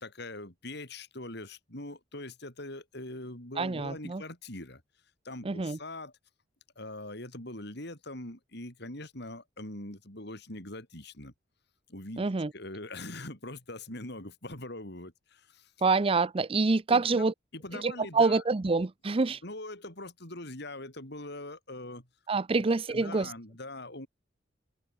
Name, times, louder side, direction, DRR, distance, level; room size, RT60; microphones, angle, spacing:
voice 1, 0.0-4.8 5.2-6.1 6.8-11.3 11.9-12.2 12.5-15.7 16.9-17.3 17.5-18.4 19.4-22.1 22.9-24.1, left 2 dB, 60° left, 7.8 m, -42 dB
voice 2, 3.6-4.2 5.4-5.8 12.2-12.5 15.8-17.3 17.8-19.4 22.3-23.3, right 3 dB, 30° right, 0.6 m, -26 dB
head